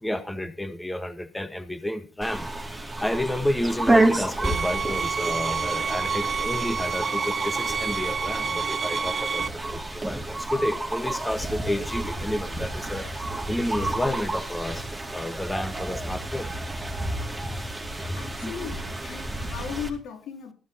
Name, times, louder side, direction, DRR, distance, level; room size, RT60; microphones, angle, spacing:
voice 1, 0.0-2.5 3.0-13.1 13.5-16.5 18.4-18.5, left 1 dB, 10° left, 11 dB, 1.6 m, -30 dB
sound 1, 2.2-19.9, right 2 dB, 10° right, 4.3 m, -30 dB
sound 2, 4.4-9.5, right 5 dB, 40° right, 1.2 m, -28 dB
voice 2, 17.8-20.5, left 8 dB, 85° left, 6 dB, 3.2 m, -37 dB
14.5 x 12.5 x 4.3 m, 0.34 s
cardioid pair, 90°, 0 cm